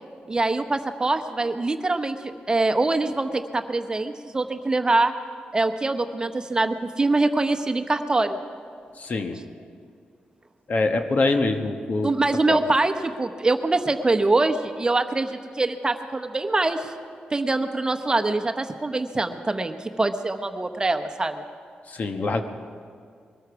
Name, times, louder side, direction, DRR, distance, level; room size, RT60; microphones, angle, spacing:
voice 1, 0.3-2.2 2.5-5.1 5.5-8.4 12.0-16.9 17.3-21.4, right 2 dB, 25° right, 7 dB, 0.9 m, -24 dB
voice 2, 9.0-9.4 10.7-12.1 12.5-12.6 21.9-22.4, left 3 dB, 55° left, 6 dB, 1.2 m, -24 dB
21.5 x 13.5 x 4.8 m, 2.2 s
cardioid pair, 75°, 3 cm